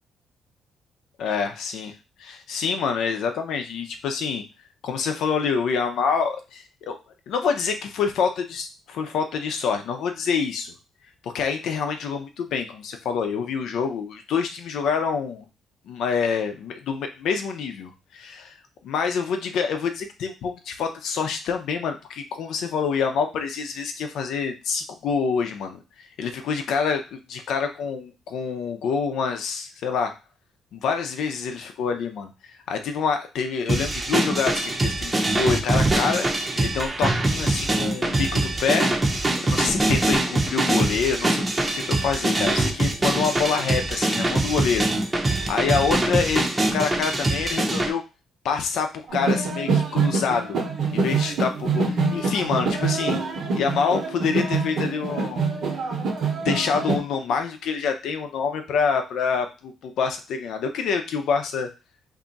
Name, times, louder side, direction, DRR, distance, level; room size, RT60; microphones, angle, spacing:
voice 1, 1.2-1.9 2.2-4.4 4.8-7.0 7.3-10.7 11.2-15.4 15.9-18.6 18.8-30.1 30.7-36.3 36.6-38.9 39.4-44.9 45.5-48.0 48.4-50.6 50.9-53.2 53.5-55.4 56.4-61.7, left 6 dB, 80° left, 6 dB, 0.6 m, -26 dB
sound 1, 33.7-47.9, right 2 dB, 20° right, 0.7 m, -23 dB
sound 2, 49.1-57.0, right 4 dB, 70° right, 1.2 m, -25 dB
2.7 x 2.3 x 3.9 m, 0.29 s
cardioid pair, 90°, 0 cm